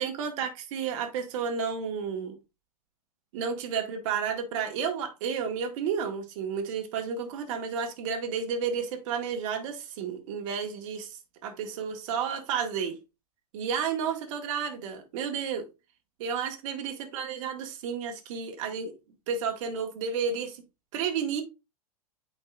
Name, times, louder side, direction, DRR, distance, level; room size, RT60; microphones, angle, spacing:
voice 1, 0.0-2.4 3.3-13.0 13.5-15.7 16.2-18.9 19.3-20.6 20.9-21.4, right 6 dB, 55° right, 1.5 m, -31 dB
8.7 x 4.8 x 2.3 m
hypercardioid pair, 95°, 19 cm